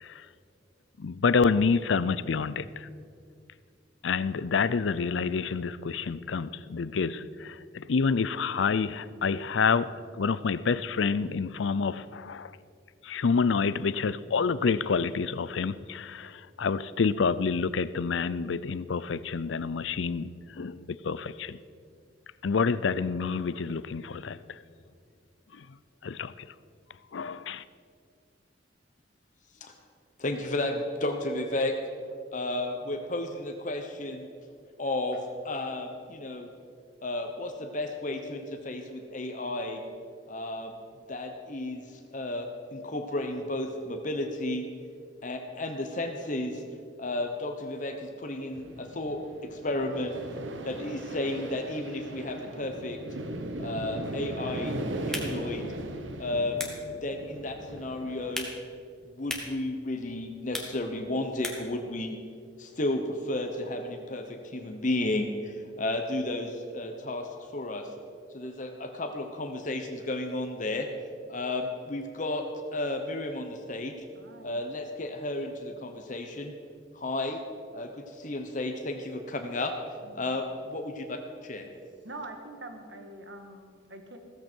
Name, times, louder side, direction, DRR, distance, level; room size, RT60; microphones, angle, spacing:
voice 1, 1.0-2.7 4.0-12.5 13.1-16.3 16.6-20.3 20.6-20.8 21.0-21.6 22.4-24.4 26.0-26.3 27.1-27.6, left 5 dB, 80° left, 0.5 m, -28 dB
voice 2, 30.2-31.7 32.3-34.3 34.8-35.2 35.4-36.5 37.0-39.8 40.3-40.8 41.1-44.6 45.2-46.6 47.0-50.2 50.6-53.0 53.6-54.8 55.0-55.6 56.2-56.7 57.0-58.5 59.1-62.1 62.6-67.3 67.5-67.9 68.3-70.9 71.3-72.4 72.7-73.9 74.4-76.5 76.9-77.4 77.7-77.9 78.2-79.7 80.1-81.2 81.4-81.7, left 2 dB, 45° left, 1.0 m, -33 dB
sound 1, 48.5-58.4, right 1 dB, 90° right, 1.2 m, -38 dB
sound 2, 54.9-61.8, left 1 dB, 5° left, 1.7 m, -42 dB
voice 3, 74.1-74.5 80.0-80.3 82.0-84.2, right 2 dB, 70° right, 1.6 m, -44 dB
16.0 x 14.0 x 4.5 m
head